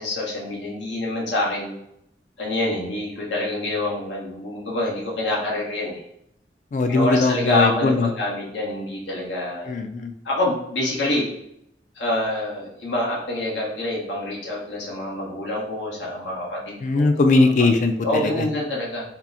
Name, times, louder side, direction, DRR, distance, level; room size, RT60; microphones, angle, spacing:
voice 1, 0.0-1.7 2.4-6.0 6.9-9.8 10.2-11.3 11.9-17.1 17.6-17.7 18.0-19.0, left 1 dB, 90° left, -4 dB, 1.0 m, -26 dB
voice 2, 6.7-8.1 9.7-10.1 16.8-18.5, left 3 dB, 45° left, 7 dB, 0.3 m, -20 dB
2.9 x 2.0 x 3.6 m, 0.78 s
head